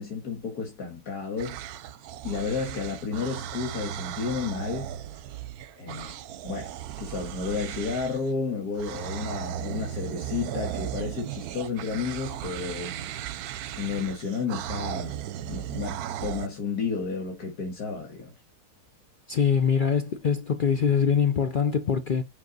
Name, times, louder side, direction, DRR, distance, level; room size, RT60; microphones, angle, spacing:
voice 1, 0.0-1.7 2.2-5.0 5.8-13.0 13.8-15.2 15.5-18.3, left 5 dB, 85° left, 2.0 m, -32 dB
sound 1, 1.4-8.3 8.8-16.5, right 11 dB, 80° right, 1.1 m, -36 dB
voice 2, 19.3-22.2, left 6 dB, 60° left, 0.5 m, -23 dB
5.7 x 5.1 x 4.0 m
omnidirectional pair, 1.6 m